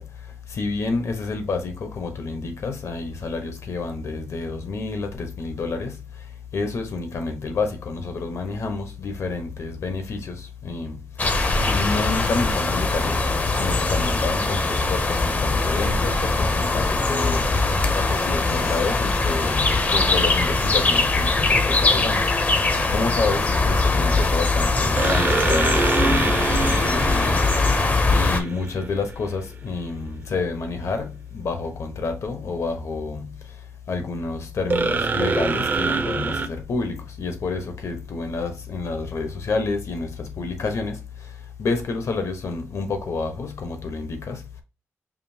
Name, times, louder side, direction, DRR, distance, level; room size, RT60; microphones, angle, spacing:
voice 1, 0.0-44.6, left 3 dB, 70° left, 0.9 m, -29 dB
sound 1, 11.2-28.4, left 3 dB, 30° left, 0.5 m, -21 dB
sound 2, 18.6-19.3 25.0-29.1 34.7-36.5, right 3 dB, 35° right, 0.4 m, -25 dB
5.1 x 2.7 x 2.7 m
wide cardioid pair, 145°, 5 cm